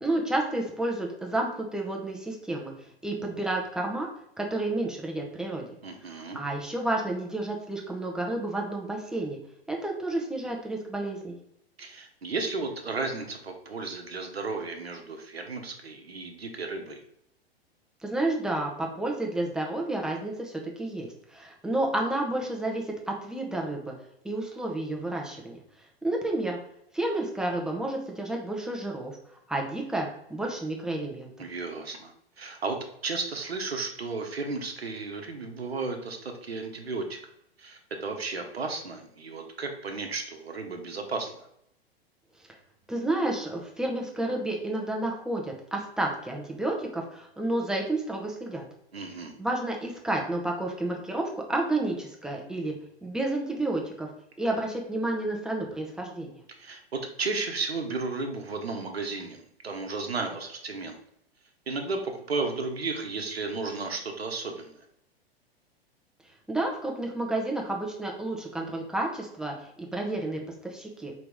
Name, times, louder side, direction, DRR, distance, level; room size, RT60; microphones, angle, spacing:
voice 1, 0.0-2.7 3.0-4.1 4.4-5.7 6.1-9.4 9.7-11.4 18.0-23.9 24.2-25.6 26.0-26.6 26.9-29.2 29.5-31.3 42.9-48.6 49.4-52.7 53.0-54.1 54.4-56.3 66.5-71.3, right 2 dB, ahead, 0 dB, 0.5 m, -30 dB
voice 2, 5.8-6.4 11.8-17.0 31.4-37.2 37.6-41.5 48.9-49.3 56.6-61.0 61.7-64.8, right 3 dB, 75° right, 4 dB, 0.9 m, -34 dB
4.7 x 2.9 x 3.5 m, 0.74 s
figure-of-eight pair, 100°, 31 cm